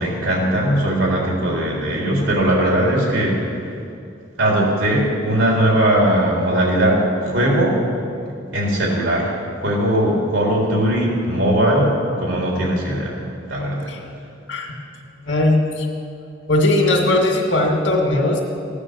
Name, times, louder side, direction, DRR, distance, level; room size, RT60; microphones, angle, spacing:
voice 1, 0.0-3.4 4.4-7.8 8.5-9.3 9.6-13.2 13.5-13.9, right 1 dB, 90° right, -2 dB, 3.7 m, -19 dB
voice 2, 15.3-15.9 16.5-18.4, left 1 dB, 75° left, 1 dB, 2.2 m, -18 dB
16.0 x 9.8 x 6.9 m, 2.5 s
head